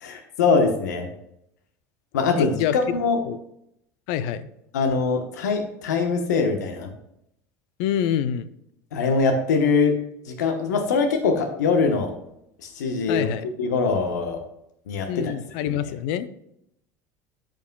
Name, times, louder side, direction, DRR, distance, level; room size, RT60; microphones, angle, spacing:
voice 1, 0.0-1.1 2.1-3.2 4.7-6.9 8.9-9.9 10.3-12.1 12.6-13.3 13.6-14.4 14.9-15.7, left 4 dB, 85° left, 5 dB, 1.1 m, -23 dB
voice 2, 2.4-3.0 3.3-3.4 4.1-4.5 7.8-8.5 13.1-13.4 15.1-16.3, left 10 dB, 65° left, 14 dB, 0.6 m, -26 dB
14.0 x 5.2 x 2.3 m, 0.78 s
hypercardioid pair, 80°, 9 cm